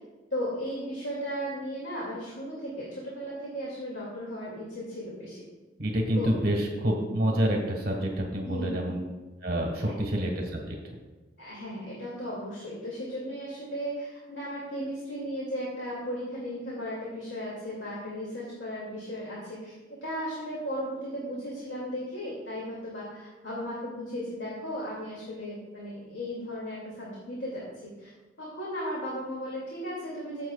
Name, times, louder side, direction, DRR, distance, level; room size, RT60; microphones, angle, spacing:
voice 1, 0.3-5.4 6.2-6.3 8.4-8.7 9.7-9.9 11.4-28.1 28.4-30.5, equal, 80° left, -6 dB, 2.4 m, -36 dB
voice 2, 5.8-9.0 9.4-10.8, right 1 dB, 55° right, 0 dB, 1.5 m, -28 dB
15.0 x 7.5 x 2.4 m, 1.2 s
head